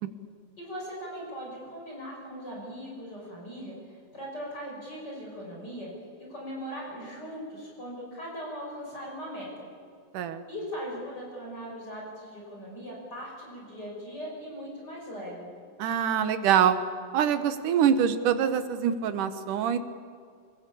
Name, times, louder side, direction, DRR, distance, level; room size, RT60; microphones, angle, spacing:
voice 1, 0.6-5.9 6.2-9.7 10.5-15.5, equal, 30° left, -3 dB, 6.4 m, -39 dB
voice 2, 15.8-16.8 17.1-19.8, right 8 dB, 75° right, 10 dB, 2.7 m, -24 dB
26.5 x 20.0 x 8.6 m, 2.3 s
omnidirectional pair, 3.8 m